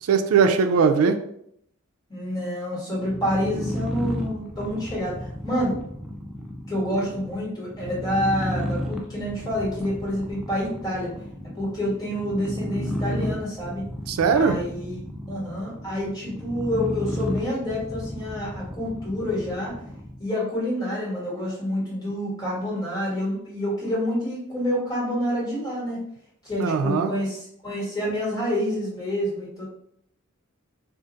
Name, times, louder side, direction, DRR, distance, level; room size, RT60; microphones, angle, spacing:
voice 1, 0.0-1.2 6.9-7.1 14.1-14.5 26.6-27.1, right 5 dB, 85° right, 6 dB, 0.4 m, -20 dB
voice 2, 2.1-5.8 6.7-11.1 11.5-13.8 14.3-15.0 15.3-19.7 20.2-26.0 26.4-29.6, equal, 20° left, -7 dB, 1.5 m, -28 dB
sound 1, 3.0-20.3, equal, ahead, 0.3 m, -33 dB
2.5 x 2.4 x 3.9 m, 0.71 s
head